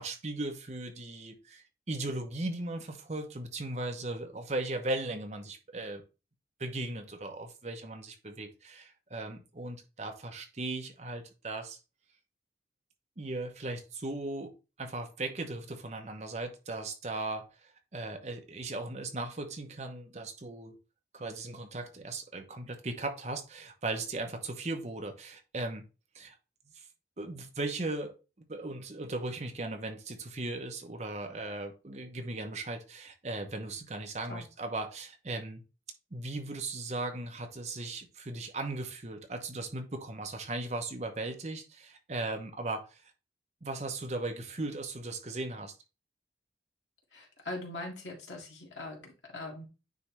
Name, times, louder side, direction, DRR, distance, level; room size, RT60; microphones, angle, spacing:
voice 1, 0.0-6.0 6.6-11.8 13.2-14.5 14.8-17.4 17.9-20.8 21.1-25.8 26.1-26.3 26.7-26.8 27.2-28.2 28.5-35.6 36.1-43.0 43.6-45.7, right 2 dB, 40° right, 0.9 m, -37 dB
voice 2, 47.1-49.7, left 2 dB, 90° left, 2.1 m, -41 dB
9.4 x 3.2 x 3.1 m
head